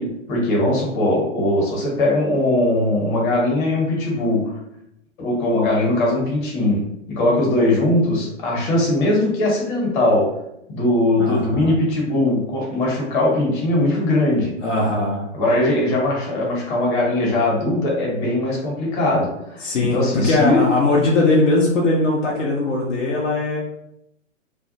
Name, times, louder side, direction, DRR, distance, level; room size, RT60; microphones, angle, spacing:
voice 1, 0.0-4.5 5.2-10.3 10.7-14.6 15.3-20.6, left 1 dB, 40° left, -3 dB, 1.1 m, -20 dB
voice 2, 11.2-11.7 14.6-15.2 19.6-23.6, left 2 dB, 70° left, -3 dB, 0.7 m, -20 dB
2.4 x 2.2 x 2.6 m, 0.80 s
figure-of-eight pair, 115°, 38 cm